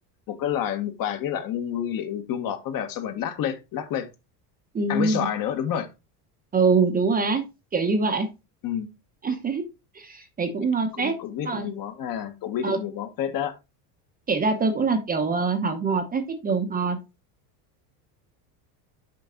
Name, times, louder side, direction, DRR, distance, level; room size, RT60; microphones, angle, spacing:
voice 1, 0.3-4.1 4.9-5.9 8.6-8.9 10.9-13.6, left 9 dB, 45° left, 1.5 m, -29 dB
voice 2, 4.7-5.3 6.5-7.4 7.7-8.3 9.2-9.6 9.9-11.2 11.4-11.7 12.6-12.8 14.3-17.0, right 4 dB, 20° right, 0.8 m, -24 dB
6.7 x 5.5 x 3.8 m
cardioid pair, 145°, 47 cm